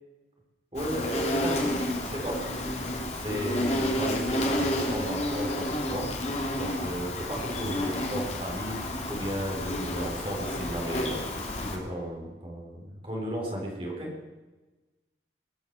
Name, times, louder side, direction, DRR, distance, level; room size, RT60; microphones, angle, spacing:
Insect, 0.7-11.8, left 1 dB, 35° left, 2.2 m, -30 dB
voice 1, 0.7-2.4 3.1-6.1 6.6-11.2 11.6-14.1, equal, 30° right, -2 dB, 4.0 m, -34 dB
21.5 x 7.2 x 6.8 m, 1.2 s
head